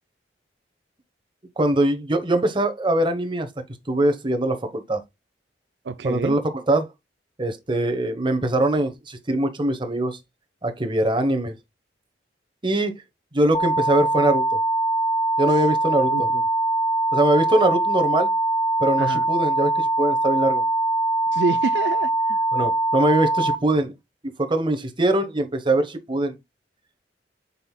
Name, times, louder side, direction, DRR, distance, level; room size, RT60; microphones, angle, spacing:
voice 1, 1.6-3.5 3.9-5.0 6.0-6.4 6.7-6.9 7.4-10.2 10.6-11.5 12.6-13.0 13.3-14.4 15.4-16.3 17.1-18.3 18.8-20.6 22.5-23.9 24.4-26.4, right 1 dB, 30° right, 1.2 m, -22 dB
voice 2, 5.8-6.4 15.5-15.6 16.1-16.4 19.0-19.3 21.3-22.4, right 4 dB, 75° right, 0.5 m, -28 dB
sound 1, 13.5-23.6, right 2 dB, 25° left, 0.7 m, -22 dB
7.8 x 5.5 x 2.3 m
head